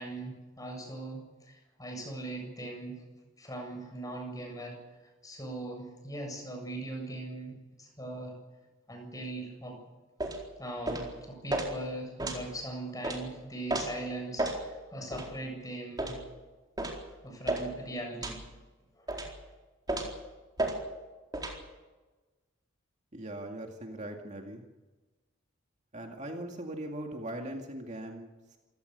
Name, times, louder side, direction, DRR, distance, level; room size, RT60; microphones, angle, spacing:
voice 1, 0.0-3.0 3.4-4.8 5.2-8.4 8.9-9.8 10.6-16.2 17.2-18.4 18.9-19.1, right 2 dB, 20° left, 2 dB, 7.8 m, -40 dB
sound 1, 10.2-10.4 10.9-11.1 11.5-11.7 12.2-12.4 13.0-13.2 13.7-13.9 14.4-14.6 15.1-15.3 16.0-16.2 16.8-17.0 17.5-17.7 18.2-18.4 19.1-19.3 19.9-20.2 20.6-20.8 21.3-21.6, right 2 dB, 20° right, 4.2 m, -32 dB
voice 2, 23.1-24.6 25.9-28.6, right 1 dB, 35° right, 2 dB, 2.3 m, -40 dB
27.0 x 17.5 x 6.9 m, 1.2 s
head